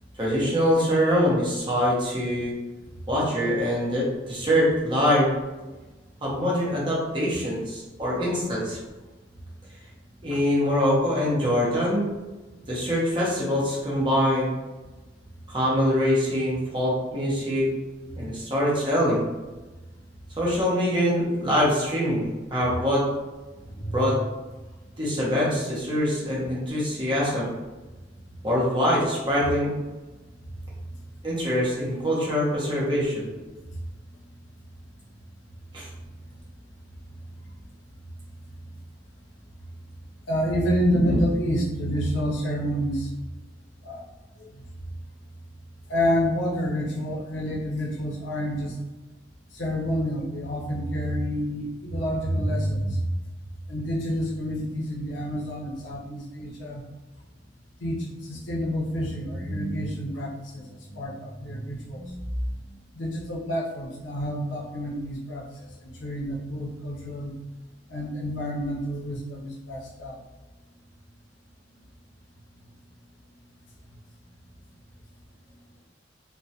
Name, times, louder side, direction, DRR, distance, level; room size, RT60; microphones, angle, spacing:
voice 1, 0.2-2.6 3.1-5.3 6.2-8.8 10.2-12.1 12.7-14.5 15.5-17.7 18.2-19.2 20.4-23.0 23.9-24.2 25.0-27.5 28.4-29.7 31.2-33.3 35.7-35.9, equal, 25° right, -6 dB, 0.7 m, -24 dB
voice 2, 23.7-24.1 40.3-43.1 43.8-44.0 44.4-44.6 45.9-48.8 49.5-53.1 53.7-56.8 57.8-62.2 62.9-65.7 66.0-67.4 67.9-70.2, equal, 80° left, -2 dB, 0.5 m, -28 dB
2.3 x 2.0 x 2.7 m, 1.2 s
head